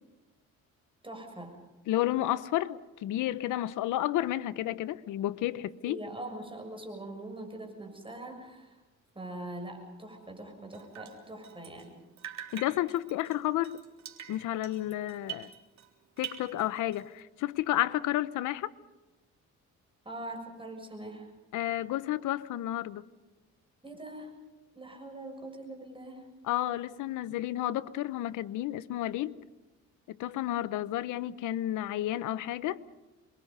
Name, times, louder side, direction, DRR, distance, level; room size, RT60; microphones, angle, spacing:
voice 1, 1.0-1.6 5.8-8.8 9.2-11.9 20.1-21.3 23.8-24.3 24.8-26.3, right 1 dB, 15° right, 6.8 m, -42 dB
voice 2, 1.9-6.0 12.5-13.8 14.3-15.5 16.2-18.7 21.5-23.0 26.4-29.4 30.1-32.8, left 14 dB, 85° left, 0.9 m, -31 dB
Drip, 10.7-11.9 12.2-15.9 16.2-17.2, right 10 dB, 65° right, 3.5 m, -45 dB
27.5 x 22.5 x 5.5 m
cardioid pair, 90°, 30 cm